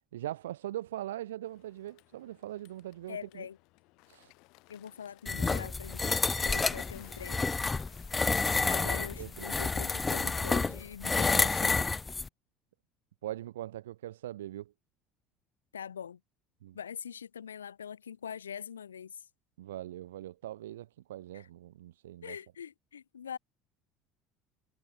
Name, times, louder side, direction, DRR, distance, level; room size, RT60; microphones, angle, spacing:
voice 1, 0.1-3.5 4.1-4.3 9.2-9.5 13.2-14.7 16.6-16.8 19.6-22.4, right 13 dB, 70° right, 0.7 m, -41 dB
Bird, 1.5-10.9, left 25 dB, 55° left, 2.0 m, -58 dB
voice 2, 3.1-3.6 4.7-7.4 8.6-11.8 15.7-16.2 16.7-19.3 21.3-21.5 22.2-23.4, left 8 dB, 75° left, 0.4 m, -43 dB
sound 1, 5.3-12.3, left 4 dB, 20° left, 0.5 m, -29 dB
figure-of-eight pair, 65°, 0 cm